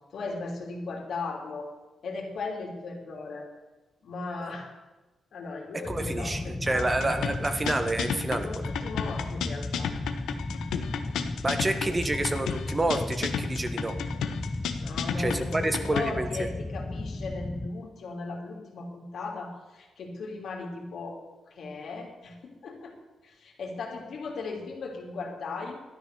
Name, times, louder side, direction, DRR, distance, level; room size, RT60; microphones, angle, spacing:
voice 1, 0.1-1.7 2.0-3.5 4.0-4.7 5.3-6.9 8.4-9.9 14.8-21.2 21.5-23.0 23.2-25.8, left 3 dB, 70° left, 0 dB, 3.4 m, -37 dB
sound 1, 5.8-17.7, left 2 dB, 20° left, 0.9 m, -35 dB
voice 2, 5.9-8.5 11.4-14.0 15.2-16.5, right 2 dB, 25° right, 8 dB, 1.4 m, -28 dB
sound 2, 6.8-16.1, left 8 dB, 90° left, 1.1 m, -33 dB
12.5 x 10.0 x 6.9 m, 1.2 s
cardioid pair, 80°, 0 cm